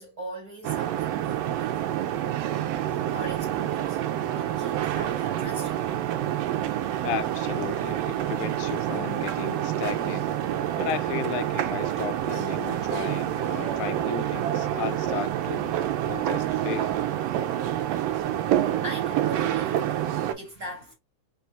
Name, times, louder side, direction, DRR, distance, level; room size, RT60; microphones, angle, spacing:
voice 1, 0.0-2.1 2.8-4.0 4.4-5.9 18.8-20.9, right 1 dB, 40° right, 1.5 m, -40 dB
sound 1, 0.6-20.3, right 11 dB, 80° right, 1.5 m, -27 dB
voice 2, 7.0-10.3 10.8-15.8 16.0-17.0, left 11 dB, 85° left, 2.1 m, -35 dB
4.4 x 3.4 x 2.6 m
omnidirectional pair, 3.4 m